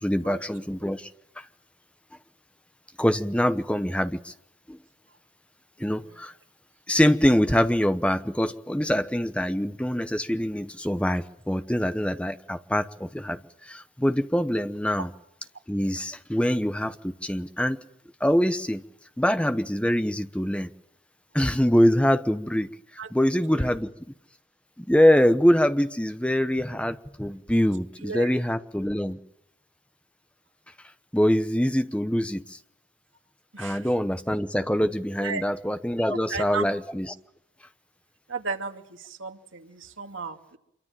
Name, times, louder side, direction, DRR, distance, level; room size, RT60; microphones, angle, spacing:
voice 1, 0.0-1.1 3.0-4.3 4.7-4.8 5.8-6.3 6.9-15.1 15.7-17.8 18.2-18.8 19.2-20.7 21.3-22.7 23.1-23.9 24.8-29.2 31.1-32.6 33.6-37.1, equal, 5° left, 1.0 m, -24 dB
voice 2, 36.1-36.7 38.3-40.6, right 4 dB, 85° right, 2.5 m, -34 dB
26.5 x 24.0 x 7.6 m
head